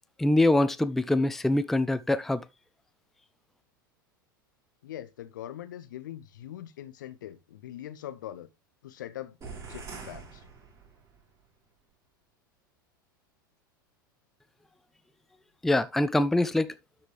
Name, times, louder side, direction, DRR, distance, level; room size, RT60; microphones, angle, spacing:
voice 1, 0.2-2.4 15.6-16.7, left 1 dB, ahead, 0.4 m, -24 dB
voice 2, 4.8-8.5 8.8-9.4 9.7-10.4, left 12 dB, 60° left, 1.0 m, -42 dB
sound 1, 9.4-11.3, right 4 dB, 25° right, 3.6 m, -44 dB
12.5 x 4.9 x 3.3 m
figure-of-eight pair, 85°, 12 cm